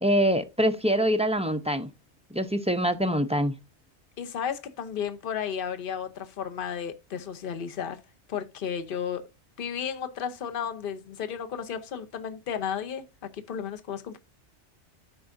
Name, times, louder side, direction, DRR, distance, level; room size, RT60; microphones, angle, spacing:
voice 1, 0.0-1.9 2.3-3.5, equal, 10° right, 0.3 m, -24 dB
voice 2, 4.2-8.0 8.3-9.2 9.6-13.0 13.3-14.2, left 7 dB, 55° left, 1.0 m, -33 dB
12.5 x 4.7 x 2.5 m
omnidirectional pair, 1.2 m